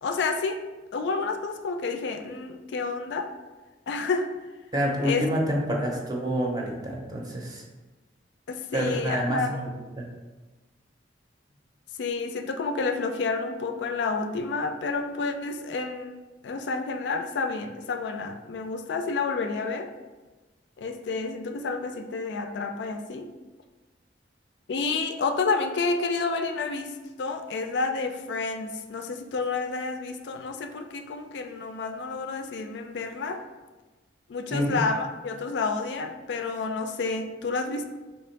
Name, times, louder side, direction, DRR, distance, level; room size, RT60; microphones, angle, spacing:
voice 1, 0.0-0.6 0.9-3.3 3.9-4.3 5.0-5.3 8.5-9.6 12.0-19.9 20.8-23.3 24.7-33.4 34.3-37.9, left 4 dB, 70° left, 6 dB, 0.4 m, -30 dB
voice 2, 4.7-7.6 8.7-10.1 34.5-34.7, equal, 20° right, 0 dB, 0.6 m, -28 dB
3.4 x 2.8 x 4.4 m, 1.2 s
head